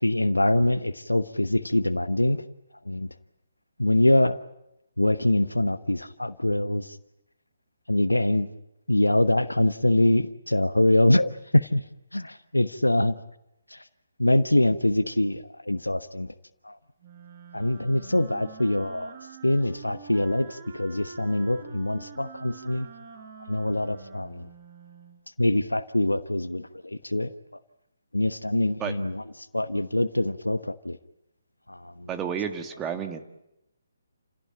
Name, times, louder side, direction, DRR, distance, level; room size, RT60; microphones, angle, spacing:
voice 1, 0.0-2.4 2.8-3.1 3.8-4.4 5.0-7.0 7.9-8.5 8.9-11.8 12.1-13.2 13.7-13.8 14.2-16.3 16.6-16.8 17.5-19.2 19.4-22.9 23.5-24.5 25.4-27.3 28.1-29.2 29.5-31.0 31.7-32.1, left 1 dB, 90° left, 11 dB, 1.1 m, -24 dB
Wind instrument woodwind instrument, 17.0-25.2, right 6 dB, 35° right, 4.2 m, -46 dB
voice 2, 32.1-33.2, right 8 dB, 15° right, 6 dB, 1.7 m, -31 dB
29.5 x 17.0 x 9.0 m, 0.88 s
figure-of-eight pair, 140°, 0 cm